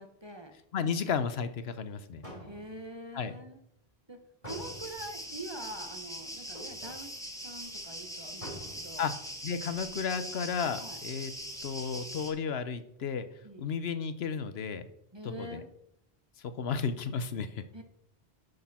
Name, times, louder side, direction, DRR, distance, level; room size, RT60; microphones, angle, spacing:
voice 1, 0.0-0.5 2.4-3.6 4.1-9.0 10.8-11.0 13.4-13.7 15.1-15.7 17.7-17.8, right 1 dB, 25° right, 5 dB, 1.2 m, -45 dB
voice 2, 0.7-2.2 3.1-3.3 9.0-9.1 9.4-11.3 11.6-13.3 13.6-14.8 15.2-15.6 16.6-17.6, left 6 dB, 80° left, 11 dB, 1.0 m, -33 dB
sound 1, 1.9-2.0 2.2-2.9 4.4-5.1 6.5-7.0 7.5-7.6 7.8-7.9 8.4-8.9 9.3-9.4, equal, 35° left, 3.6 m, -46 dB
sound 2, 4.5-12.3, equal, 5° left, 1.4 m, -42 dB
11.5 x 6.6 x 4.3 m, 0.75 s
omnidirectional pair, 1.1 m